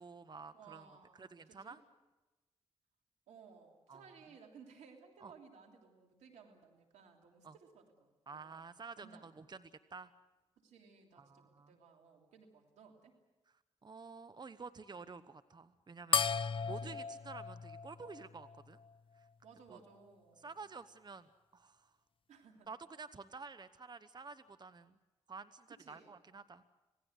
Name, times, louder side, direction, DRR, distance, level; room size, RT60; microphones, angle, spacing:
voice 1, 0.0-0.9 1.2-1.8 3.9-4.1 5.2-5.3 7.4-7.5 8.3-10.1 11.2-11.7 13.8-18.8 19.2-19.3 19.7-19.8 20.4-21.9 22.7-25.0 25.3-26.6, right 4 dB, 40° right, 13 dB, 1.0 m, -50 dB
voice 2, 0.5-1.8 3.3-8.7 9.0-9.3 10.6-13.1 16.8-17.1 19.4-20.6 22.3-22.7 25.7-26.2, right 5 dB, 80° right, 2 dB, 3.1 m, -59 dB
sound 1, 16.1-18.9, left 6 dB, 50° left, 0.7 m, -36 dB
27.0 x 17.5 x 8.1 m, 1.1 s
supercardioid pair, 45°, 12 cm